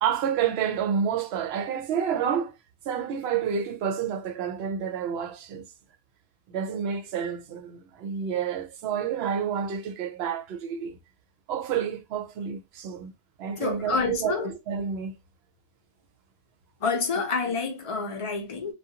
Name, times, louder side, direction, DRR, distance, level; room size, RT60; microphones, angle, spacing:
voice 1, 0.0-2.5 2.9-5.6 6.5-11.0 11.5-13.1 13.4-15.2, right 8 dB, 70° right, 0.8 m, -29 dB
voice 2, 13.6-14.5 16.8-18.7, left 4 dB, 35° left, 0.6 m, -28 dB
2.4 x 2.3 x 2.8 m
omnidirectional pair, 1.2 m